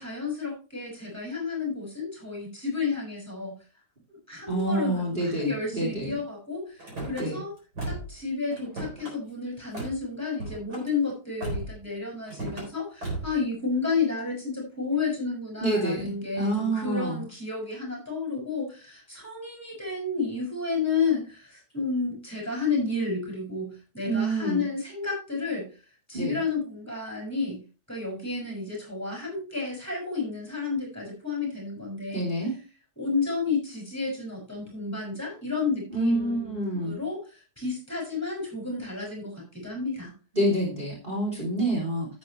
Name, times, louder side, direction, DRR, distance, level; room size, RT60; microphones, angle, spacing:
voice 1, 0.0-3.5 4.1-7.5 7.8-25.7 26.1-32.3 33.0-40.1, left 4 dB, 10° left, -1 dB, 5.9 m, -31 dB
voice 2, 4.5-6.1 7.2-7.4 15.6-17.2 24.0-24.6 26.1-26.4 32.1-32.6 35.9-37.0 40.3-42.1, right 1 dB, 30° right, -4 dB, 3.4 m, -27 dB
Car / Slam, 6.8-7.3 7.7-8.2 8.5-9.1 9.7-10.0 10.4-10.9 11.4-11.8 12.3-12.7 13.0-13.4, right 2 dB, 85° right, 4.7 m, -35 dB
11.5 x 8.8 x 3.2 m, 0.34 s
omnidirectional pair, 1.7 m